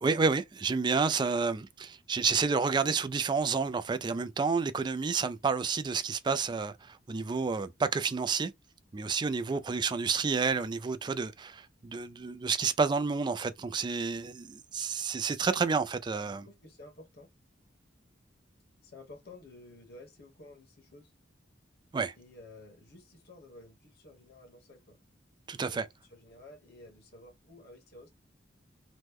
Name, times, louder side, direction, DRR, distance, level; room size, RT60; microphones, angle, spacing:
voice 1, 0.0-8.5 8.9-16.5 21.9-22.1 25.5-25.9, right 5 dB, 25° right, 0.3 m, -30 dB
voice 2, 16.3-17.3 18.8-21.1 22.2-25.0 25.7-28.1, left 2 dB, 55° left, 1.2 m, -52 dB
3.0 x 2.1 x 3.5 m
head